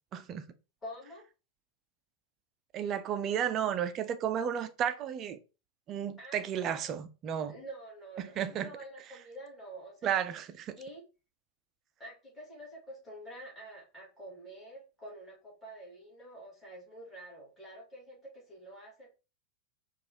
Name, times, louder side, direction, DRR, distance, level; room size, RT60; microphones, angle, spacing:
voice 1, 0.1-0.4 2.7-5.4 5.9-7.5 8.2-8.7 10.0-10.8, right 9 dB, 30° right, 0.5 m, -33 dB
voice 2, 0.8-1.3 6.2-6.8 7.5-10.2 10.8-11.0 12.0-19.1, right 1 dB, 10° left, 2.3 m, -48 dB
4.7 x 2.5 x 3.8 m
figure-of-eight pair, 90°, 0 cm